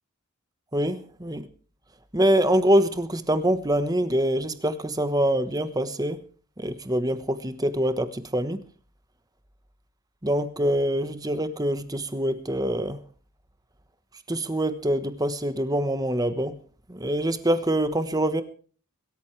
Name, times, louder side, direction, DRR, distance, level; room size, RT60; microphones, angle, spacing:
voice 1, 0.7-1.5 2.1-6.2 6.6-8.6 10.2-13.0 14.3-16.6 16.9-18.4, right 1 dB, 20° right, 11 dB, 1.2 m, -25 dB
23.0 x 13.5 x 3.3 m, 0.41 s
head